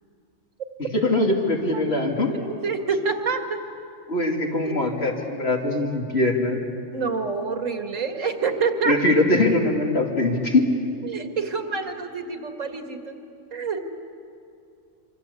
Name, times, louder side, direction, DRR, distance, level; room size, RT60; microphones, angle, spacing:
voice 1, 0.9-2.3 4.1-6.6 8.9-10.7, left 2 dB, 55° left, 0 dB, 3.2 m, -22 dB
voice 2, 2.3-3.6 4.5-4.9 6.9-9.0 11.0-13.2 13.5-13.8, right 5 dB, 90° right, 5 dB, 2.3 m, -27 dB
26.0 x 25.5 x 8.4 m, 2.6 s
omnidirectional pair, 1.3 m